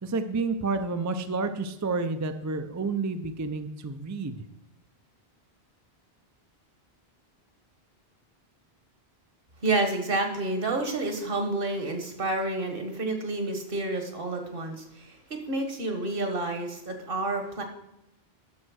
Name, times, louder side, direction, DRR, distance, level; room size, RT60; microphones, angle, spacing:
voice 1, 0.0-4.4, right 3 dB, 25° right, 8 dB, 0.4 m, -30 dB
voice 2, 9.6-17.6, right 2 dB, 60° right, 4 dB, 1.5 m, -29 dB
11.5 x 4.4 x 6.3 m, 0.85 s
omnidirectional pair, 1.1 m